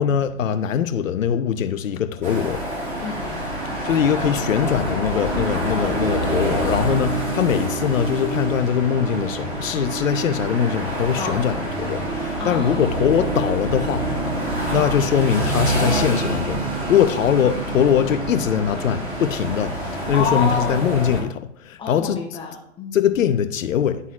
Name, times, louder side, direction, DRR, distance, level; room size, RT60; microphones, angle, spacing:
voice 1, 0.0-2.6 3.8-14.0 14.7-22.2 22.9-24.0, left 8 dB, 80° left, 0.8 m, -22 dB
sound 1, 2.2-21.2, right 1 dB, 20° right, 2.1 m, -26 dB
voice 2, 3.0-3.4 11.2-11.4 12.4-13.0 20.1-20.8 21.8-23.0, left 5 dB, 15° left, 0.8 m, -29 dB
11.0 x 4.1 x 2.4 m
hypercardioid pair, 135°, 39 cm